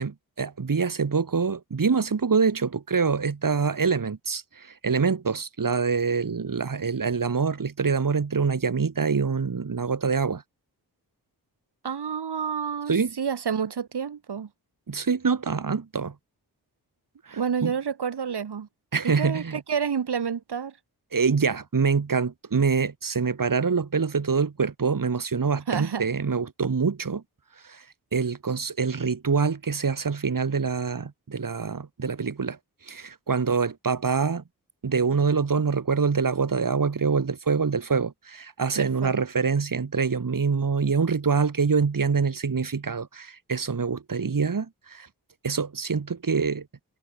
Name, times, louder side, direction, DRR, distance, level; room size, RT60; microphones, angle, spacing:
voice 1, 0.0-10.4 12.9-13.1 14.9-16.1 17.3-17.7 18.9-19.6 21.1-27.2 27.6-27.8 28.1-32.6 32.8-34.4 34.8-45.1 45.4-46.7, right 5 dB, 55° right, 4.4 m, -25 dB
voice 2, 11.8-14.5 17.3-18.7 19.0-20.8 25.7-26.0 38.8-39.2, right 7 dB, 80° right, 4.4 m, -29 dB
wide cardioid pair, 85°, 39 cm